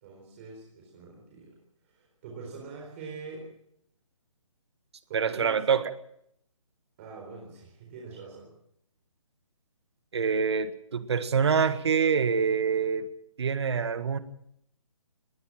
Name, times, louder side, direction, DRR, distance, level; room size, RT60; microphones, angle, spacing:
voice 1, 0.0-1.6 1.8-3.5 5.1-5.6 7.0-8.5, right 4 dB, 25° right, -1 dB, 4.2 m, -44 dB
voice 2, 5.1-5.9 10.1-13.1 13.4-14.2, right 6 dB, 50° right, 12 dB, 1.7 m, -25 dB
19.5 x 19.5 x 7.5 m, 0.73 s
hypercardioid pair, 170°, 18 cm